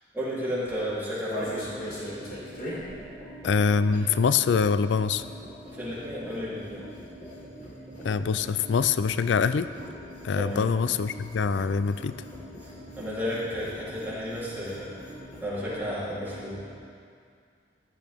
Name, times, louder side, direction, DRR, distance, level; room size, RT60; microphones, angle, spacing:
voice 1, 0.0-1.7 5.7-6.8 10.3-10.6 12.6-15.0 15.4-16.6, equal, 10° right, -10 dB, 3.3 m, -33 dB
sound 1, 0.6-4.3 4.5-15.5 15.7-15.8 16.0-16.4, equal, 55° left, 3.7 m, -42 dB
sound 2, 1.4-16.7, equal, 15° left, 3.7 m, -45 dB
voice 2, 3.4-5.2 8.0-9.7 10.2-12.1, left 5 dB, 85° left, 13 dB, 0.4 m, -24 dB
15.5 x 11.5 x 3.6 m, 2.3 s
head